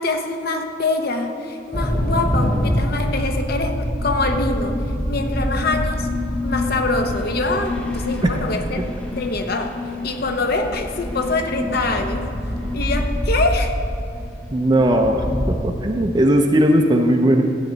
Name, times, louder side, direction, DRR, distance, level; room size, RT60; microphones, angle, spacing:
voice 1, 0.0-4.8 5.1-6.1 6.4-12.3 12.7-13.8, left 2 dB, 60° left, 5 dB, 0.9 m, -24 dB
sound 1, 1.7-15.6, left 1 dB, 5° left, 0.8 m, -25 dB
voice 2, 14.5-17.4, right 1 dB, 25° right, 2 dB, 0.5 m, -17 dB
13.0 x 8.5 x 3.9 m, 2.5 s
head